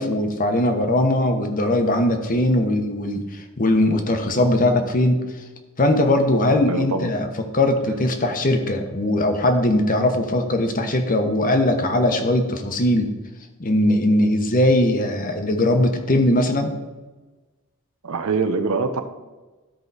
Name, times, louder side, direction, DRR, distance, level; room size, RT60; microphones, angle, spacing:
voice 1, 0.0-5.2 5.8-7.3 7.5-13.1 13.6-16.7, left 1 dB, 40° left, 6 dB, 1.0 m, -20 dB
voice 2, 6.7-7.1 18.0-19.0, right 4 dB, 80° right, 9 dB, 0.8 m, -23 dB
13.0 x 4.9 x 4.1 m, 1.2 s
head